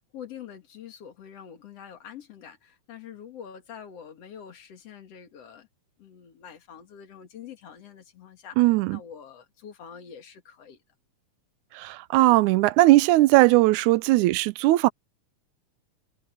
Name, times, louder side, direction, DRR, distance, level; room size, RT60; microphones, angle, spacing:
voice 1, 0.0-5.7 6.0-10.8, left 8 dB, 55° left, 3.0 m, -45 dB
voice 2, 8.6-9.0 11.8-14.9, right 18 dB, 90° right, 2.0 m, -19 dB
omnidirectional pair, 3.3 m